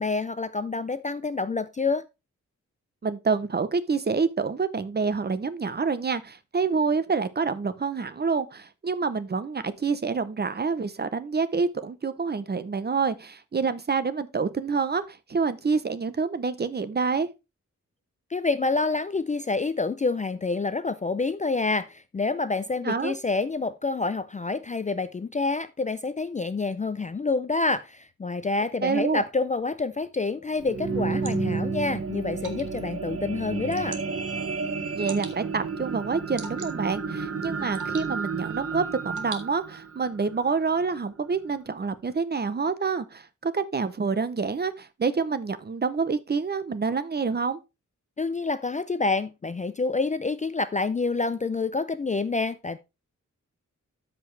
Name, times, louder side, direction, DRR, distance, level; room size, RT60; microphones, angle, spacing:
voice 1, 0.0-2.0 18.3-34.0 48.2-52.8, left 3 dB, 25° left, 0.3 m, -27 dB
voice 2, 3.0-17.3 22.8-23.1 28.8-29.2 35.0-47.6, right 5 dB, 35° right, 0.7 m, -27 dB
sound 1, 30.4-40.9 41.5-41.6, right 5 dB, 50° right, 1.1 m, -32 dB
Water / Drip, 30.6-40.0, right 5 dB, 80° right, 1.5 m, -47 dB
13.0 x 5.1 x 3.2 m
wide cardioid pair, 170°, 30 cm